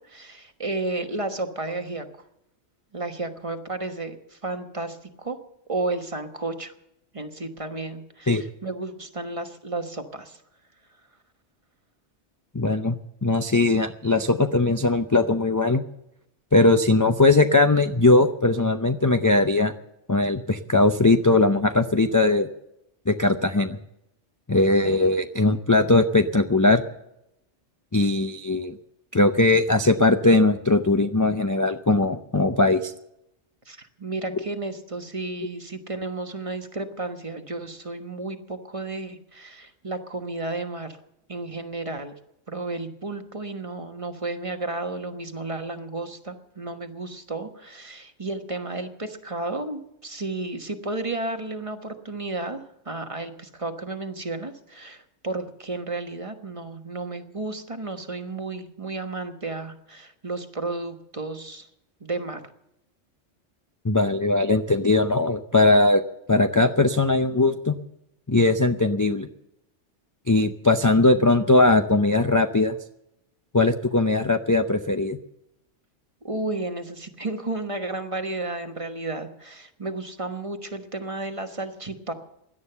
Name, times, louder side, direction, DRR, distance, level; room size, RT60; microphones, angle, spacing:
voice 1, 0.0-2.1 2.9-5.4 5.7-6.7 7.1-10.4 24.8-25.0 33.7-41.0 41.3-42.1 42.5-61.7 62.0-62.4 76.2-82.1, right 2 dB, 30° right, 6 dB, 1.3 m, -32 dB
voice 2, 12.5-15.8 16.5-19.7 20.1-22.5 23.1-23.8 24.5-26.8 27.9-28.7 29.1-32.9 63.8-66.0 66.3-67.7 68.3-69.3 70.3-72.8 73.5-75.2, left 2 dB, 25° left, 6 dB, 0.5 m, -20 dB
17.0 x 11.5 x 6.8 m, 0.83 s
omnidirectional pair, 1.2 m